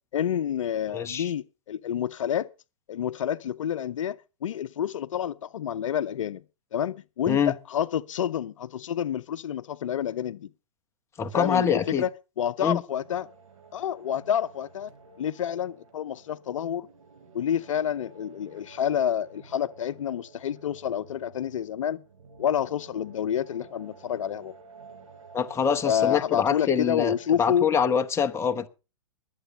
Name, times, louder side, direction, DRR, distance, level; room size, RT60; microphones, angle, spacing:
voice 1, 0.1-2.5 2.9-4.2 4.4-6.4 6.7-10.5 11.3-12.1 12.4-13.3 13.7-14.9 15.2-16.9 17.3-22.0 22.4-24.5 25.8-27.7, left 9 dB, 70° left, 0.7 m, -28 dB
voice 2, 0.9-1.3 7.2-7.5 11.2-12.0 12.6-12.8 25.3-28.7, left 7 dB, 15° left, 1.1 m, -25 dB
sound 1, 12.9-27.4, right 4 dB, 85° right, 5.3 m, -52 dB
21.5 x 8.2 x 5.5 m
hypercardioid pair, 120°, 17 cm